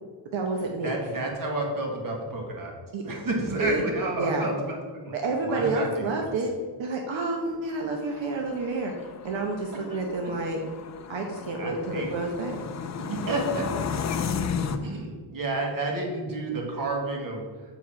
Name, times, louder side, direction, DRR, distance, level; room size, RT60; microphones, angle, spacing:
voice 1, 0.3-0.9 2.9-3.0 3.6-3.8 4.2-4.5 5.1-6.5 6.8-8.9 9.2-10.6 11.1-12.6, right 3 dB, 75° right, 1 dB, 1.1 m, -29 dB
voice 2, 0.8-2.7 3.0-5.1 5.4-6.1 9.9-10.0 11.6-12.1 13.0-13.9 14.7-17.4, right 2 dB, 45° right, 0 dB, 1.7 m, -30 dB
sound 1, 7.6-14.8, left 6 dB, 40° left, 0.4 m, -34 dB
7.0 x 4.7 x 5.6 m, 1.5 s
wide cardioid pair, 165°, 46 cm